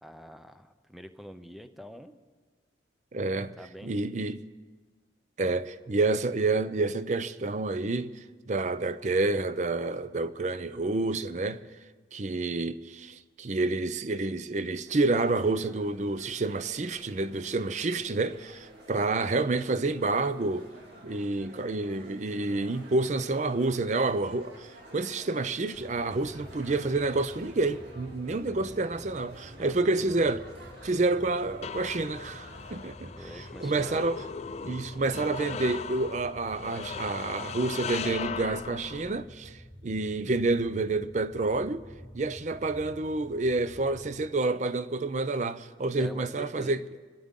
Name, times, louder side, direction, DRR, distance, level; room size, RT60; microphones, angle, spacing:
voice 1, 0.0-2.2 3.6-4.0 29.6-29.9 33.1-34.0 46.0-46.7, equal, ahead, 0.6 m, -45 dB
voice 2, 3.1-3.5 3.8-4.5 5.4-8.2 8.5-11.6 12.1-20.7 21.0-30.5 30.8-33.1 33.6-34.2 34.6-41.8 42.1-46.8, right 3 dB, 40° right, 0.5 m, -29 dB
sound 1, 14.9-32.9, right 1 dB, 70° right, 2.5 m, -51 dB
sound 2, 25.7-44.2, equal, 20° left, 1.8 m, -49 dB
sound 3, 30.7-39.2, left 6 dB, 35° left, 0.3 m, -39 dB
25.5 x 12.5 x 3.7 m
head